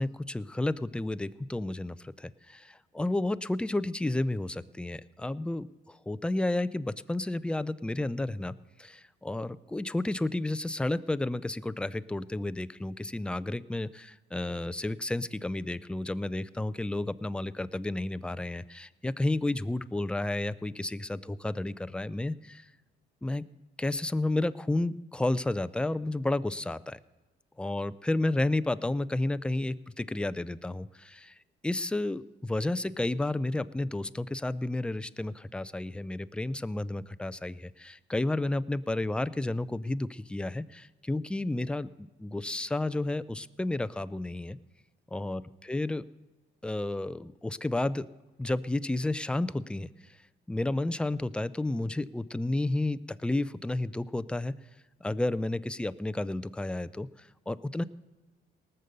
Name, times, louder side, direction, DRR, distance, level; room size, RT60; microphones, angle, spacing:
voice 1, 0.0-8.5 8.8-22.7 23.2-23.4 23.8-27.0 27.6-31.3 31.6-44.6 45.1-46.0 46.6-48.1 48.4-49.9 50.5-54.5 55.0-57.8, left 2 dB, 5° left, 15 dB, 0.4 m, -31 dB
18.5 x 6.8 x 6.7 m, 1.2 s
cardioid pair, 90°, 20 cm